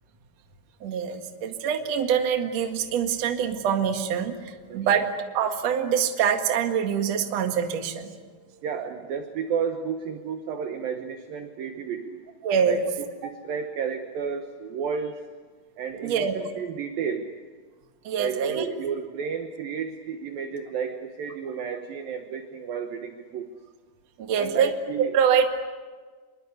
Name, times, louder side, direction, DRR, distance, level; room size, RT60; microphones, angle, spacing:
voice 1, 0.8-8.1 12.4-12.8 16.0-16.4 18.0-18.7 24.2-25.4, right 7 dB, 55° right, 5 dB, 1.9 m, -25 dB
voice 2, 4.7-5.0 8.3-12.2 12.6-12.8 13.2-15.3 15.8-17.3 18.2-23.5 24.4-25.1, right 6 dB, 75° right, 6 dB, 2.2 m, -32 dB
27.0 x 23.0 x 8.3 m, 1.5 s
omnidirectional pair, 5.8 m